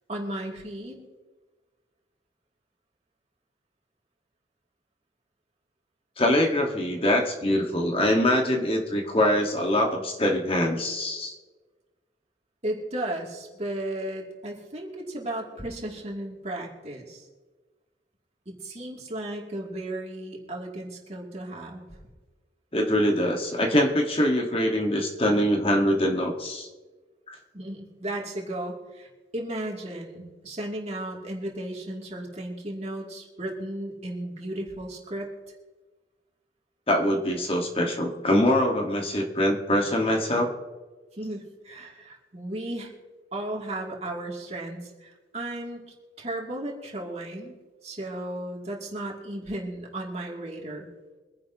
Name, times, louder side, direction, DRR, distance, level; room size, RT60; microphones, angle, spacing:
voice 1, 0.1-1.0 12.6-17.3 18.5-22.0 27.5-35.5 41.1-42.9 43.3-45.8 46.2-47.5 47.8-50.9, right 1 dB, 35° right, -1 dB, 2.7 m, -35 dB
voice 2, 6.2-11.3 22.7-26.7 36.9-40.5, left 1 dB, 30° left, 2 dB, 1.5 m, -23 dB
25.0 x 10.5 x 2.9 m, 1.3 s
head